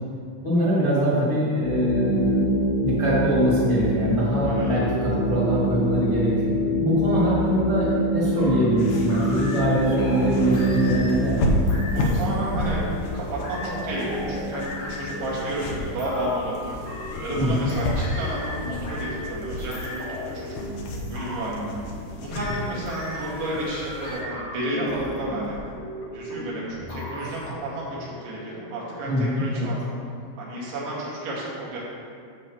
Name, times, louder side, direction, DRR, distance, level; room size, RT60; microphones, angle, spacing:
voice 1, 0.4-2.3 2.8-6.5 6.8-11.5 17.4-17.7 29.1-29.7, equal, 15° left, -10 dB, 1.0 m, -23 dB
sound 1, 1.6-16.0, equal, 70° left, 5.0 m, -26 dB
voice 2, 4.4-4.8 10.0-10.1 11.8-12.9 13.1-16.8 17.2-20.6 21.1-21.7 22.2-25.6 26.1-29.9 30.4-31.8, right 1 dB, 90° right, -6 dB, 4.6 m, -31 dB
sound 2, 8.4-11.3 11.7-13.1 13.4-27.5, left 1 dB, 55° left, 2.6 m, -36 dB
sound 3, 8.8-24.2, left 1 dB, 85° left, 1.8 m, -32 dB
15.0 x 7.0 x 3.2 m, 2.3 s
omnidirectional pair, 5.2 m